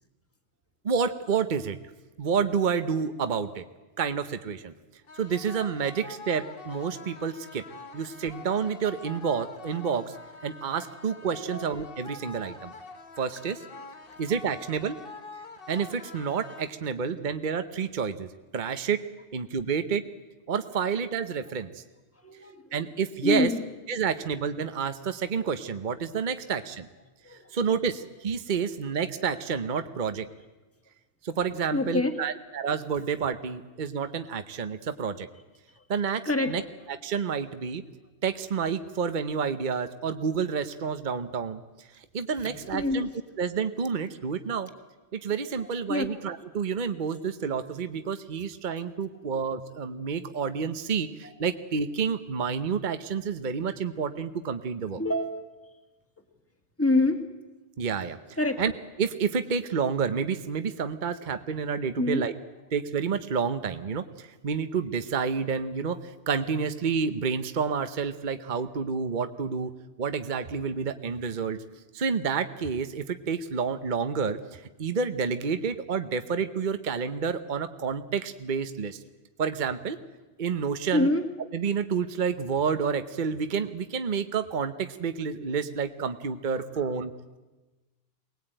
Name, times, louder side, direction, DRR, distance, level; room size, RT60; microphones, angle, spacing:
voice 1, 0.8-1.8 2.2-3.6 4.0-4.7 5.2-7.6 7.9-10.2 10.4-12.7 13.2-13.6 14.2-15.0 15.7-18.3 18.5-19.0 19.3-20.0 20.5-21.8 22.7-23.5 23.9-26.9 27.3-30.3 31.2-35.3 35.9-36.6 36.9-37.8 38.2-41.9 42.1-43.1 43.4-44.7 45.1-55.0 57.8-58.2 58.6-58.7 59.0-62.3 62.7-69.7 70.0-71.6 71.9-79.0 79.4-80.0 80.4-81.1 81.5-87.1, right 6 dB, 45° right, 10 dB, 1.0 m, -29 dB
sound 1, 5.1-17.1, left 3 dB, 55° left, 1.5 m, -45 dB
voice 2, 22.2-22.8 23.2-23.6 27.2-27.5 31.7-32.2 35.8-35.9 36.3-36.6 42.4-43.1 45.6-46.1 49.2-49.3 49.9-50.0 55.0-55.5 56.8-57.2 58.4-58.6 62.0-62.3 80.9-81.3 86.6-86.8, left 2 dB, 10° left, 6 dB, 1.9 m, -27 dB
23.5 x 19.5 x 9.0 m, 1.2 s
omnidirectional pair, 1.2 m